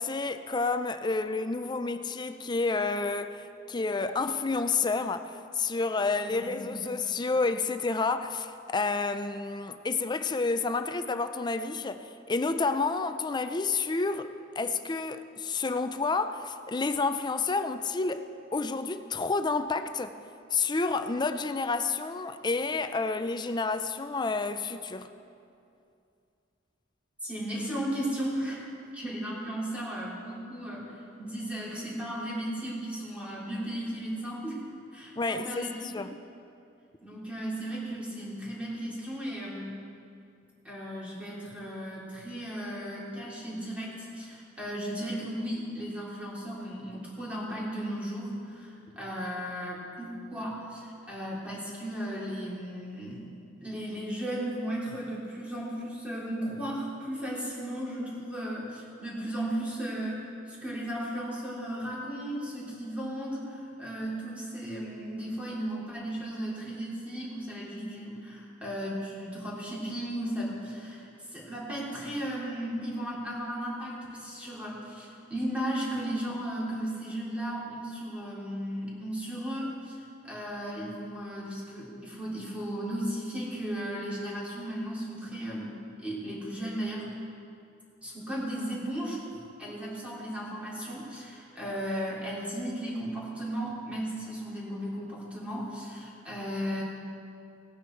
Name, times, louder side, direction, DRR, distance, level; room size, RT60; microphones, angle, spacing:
voice 1, 0.0-20.2 20.5-25.1 35.2-35.7 35.9-36.2, left 3 dB, 20° left, 0.4 m, -30 dB
voice 2, 6.3-6.9 27.2-30.9 31.2-34.6 34.9-35.8 37.0-39.7 40.6-53.2 53.6-87.1 88.0-89.2 89.6-96.8, right 1 dB, 5° right, 3.3 m, -35 dB
18.0 x 9.7 x 4.5 m
head